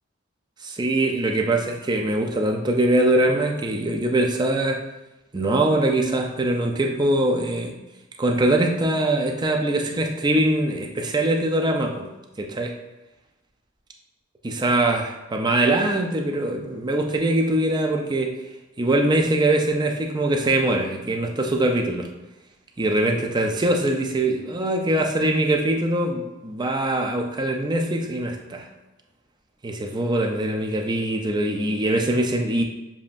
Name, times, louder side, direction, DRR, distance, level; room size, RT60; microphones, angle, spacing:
voice 1, 0.6-4.8 5.3-7.8 8.2-12.1 12.4-12.7 14.4-18.3 18.8-22.1 22.8-28.7 29.6-32.6, right 1 dB, 20° right, 2 dB, 0.4 m, -22 dB
7.0 x 2.5 x 2.5 m, 0.99 s
head